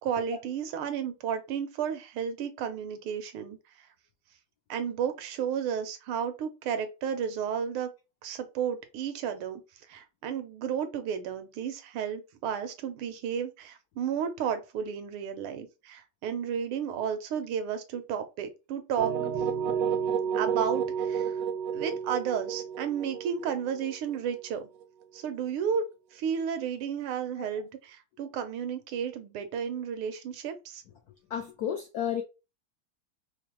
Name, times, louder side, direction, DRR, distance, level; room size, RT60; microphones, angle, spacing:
voice 1, 0.0-3.9 4.7-7.9 8.2-9.6 9.9-19.2 20.3-21.4 21.7-24.7 25.1-30.8, right 7 dB, 85° right, 1.6 m, -32 dB
sound 1, 19.0-24.8, right 7 dB, 70° right, 0.9 m, -31 dB
voice 2, 31.3-32.2, left 9 dB, 85° left, 0.8 m, -33 dB
4.8 x 2.0 x 2.9 m
omnidirectional pair, 2.3 m